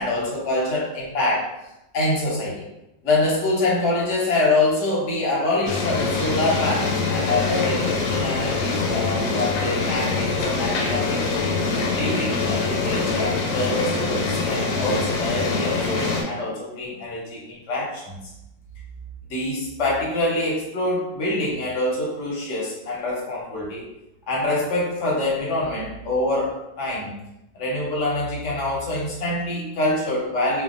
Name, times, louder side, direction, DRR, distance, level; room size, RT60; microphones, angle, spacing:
voice 1, 0.0-1.5 1.9-2.6 3.0-11.4 11.9-18.2 19.3-23.8 24.3-27.1 27.5-30.6, left 2 dB, 55° left, -5 dB, 0.9 m, -25 dB
sound 1, 5.7-16.2, left 3 dB, 85° left, 1.3 m, -24 dB
3.3 x 2.1 x 2.4 m, 0.91 s
omnidirectional pair, 2.0 m